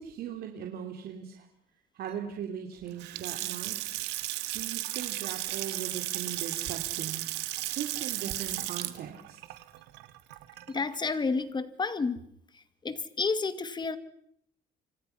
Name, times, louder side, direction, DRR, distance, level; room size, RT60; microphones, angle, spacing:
voice 1, 0.0-1.5 1.9-4.0 4.5-9.4, right 8 dB, 65° right, 3 dB, 3.0 m, -39 dB
Water tap faucet / Sink (filling or washing) / Splash splatter, 2.9-11.0, right 17 dB, 90° right, 2.0 m, -35 dB
voice 2, 10.7-12.2 12.8-14.0, left 4 dB, 25° left, 13 dB, 2.2 m, -30 dB
29.5 x 26.5 x 5.8 m, 0.69 s
cardioid pair, 110°, 17 cm